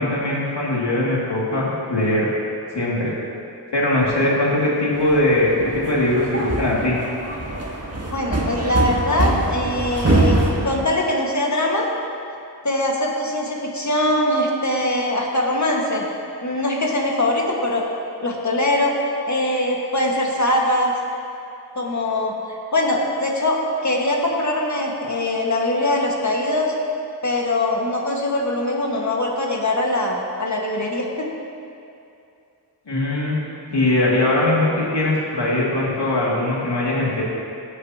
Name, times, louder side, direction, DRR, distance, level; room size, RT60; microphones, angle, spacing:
voice 1, 0.0-2.3 2.7-3.1 3.7-7.0 32.9-33.4 33.7-37.2, left 1 dB, 75° left, -5 dB, 2.5 m, -20 dB
sound 1, 4.9-10.8, right 2 dB, 35° right, 1.5 m, -23 dB
voice 2, 8.1-11.9 12.6-16.1 16.4-17.9 18.2-18.9 19.3-20.9 21.8-26.7 27.2-31.3, left 1 dB, 40° left, -1 dB, 1.8 m, -22 dB
16.5 x 8.2 x 2.9 m, 2.6 s
cardioid pair, 45°, 42 cm